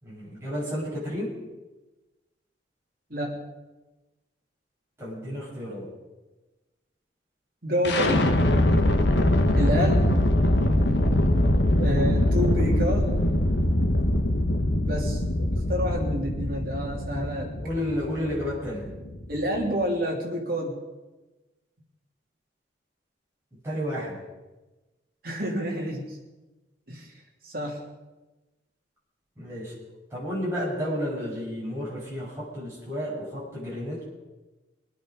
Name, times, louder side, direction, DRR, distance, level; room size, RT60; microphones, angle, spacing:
voice 1, 0.0-1.3 5.0-5.9 17.6-18.9 23.6-24.2 29.4-29.7 30.1-34.0, equal, 15° right, -8 dB, 6.4 m, -31 dB
voice 2, 7.6-8.3 9.5-10.1 11.8-13.2 14.8-15.2 15.5-17.5 19.3-20.8 25.2-26.2 26.9-27.1 27.4-27.8, equal, 50° right, 0 dB, 3.0 m, -28 dB
sound 1, 7.8-19.7, left 1 dB, 70° left, 1.3 m, -23 dB
23.5 x 9.4 x 5.3 m, 1.1 s
head